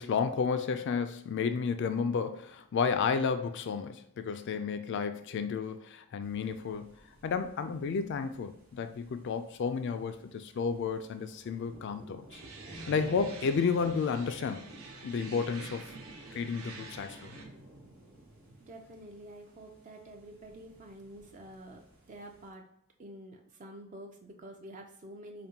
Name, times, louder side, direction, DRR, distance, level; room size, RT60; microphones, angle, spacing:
voice 1, 0.0-7.0 7.2-12.4 12.9-14.6 15.0-15.9 16.3-17.3, left 5 dB, 55° left, 9 dB, 0.3 m, -32 dB
sound 1, 6.2-22.5, right 1 dB, 85° right, 1.2 m, -52 dB
sound 2, 12.3-17.5, right 4 dB, 70° right, 0.7 m, -49 dB
voice 2, 18.7-22.6 23.0-25.5, right 1 dB, 35° right, 3 dB, 0.4 m, -48 dB
5.1 x 2.6 x 2.8 m, 0.71 s
head